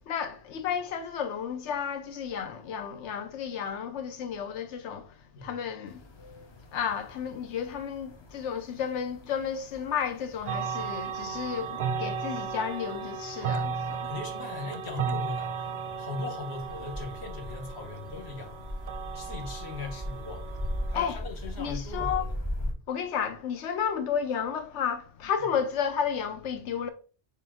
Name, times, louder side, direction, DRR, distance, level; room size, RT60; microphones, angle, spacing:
voice 1, 0.0-6.0 6.7-14.1 20.9-21.2 21.6-22.3 22.9-26.9, left 7 dB, 90° left, 1.0 m, -32 dB
sound 1, 5.9-22.7, equal, 35° left, 0.5 m, -40 dB
sound 2, 10.5-21.1, right 6 dB, 50° right, 0.5 m, -35 dB
voice 2, 14.0-15.7 16.0-18.8 19.1-20.5 20.9-22.3 22.6-22.8, left 3 dB, 70° left, 1.3 m, -39 dB
6.6 x 2.3 x 3.5 m
omnidirectional pair, 1.2 m